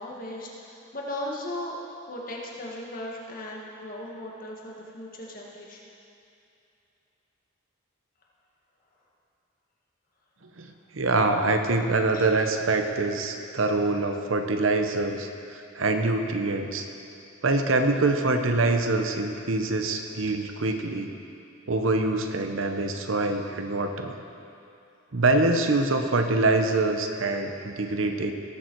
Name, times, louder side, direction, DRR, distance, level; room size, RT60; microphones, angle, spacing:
voice 1, 0.0-1.8 2.1-5.9 12.1-12.3, left 1 dB, 45° left, -2 dB, 1.6 m, -37 dB
voice 2, 10.6-16.9 17.4-21.1 21.7-24.1 25.1-28.3, right 2 dB, 80° right, 5 dB, 0.9 m, -25 dB
18.0 x 7.1 x 4.6 m, 2.7 s
head